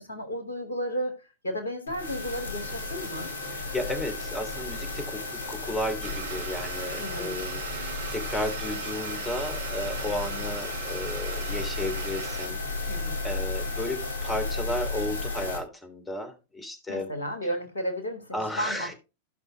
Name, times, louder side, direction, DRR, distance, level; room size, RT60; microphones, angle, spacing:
voice 1, 0.0-3.3 7.0-7.4 12.9-13.2 16.9-18.9, equal, 75° left, 2.9 m, -33 dB
sound 1, 1.9-15.6, left 3 dB, 90° right, 3.6 m, -33 dB
voice 2, 3.5-17.1 18.3-18.9, left 1 dB, 10° left, 3.2 m, -34 dB
Domestic sounds home sounds, 6.0-12.5, right 10 dB, 60° right, 0.6 m, -40 dB
16.5 x 6.0 x 2.8 m
figure-of-eight pair, 90°, 0 cm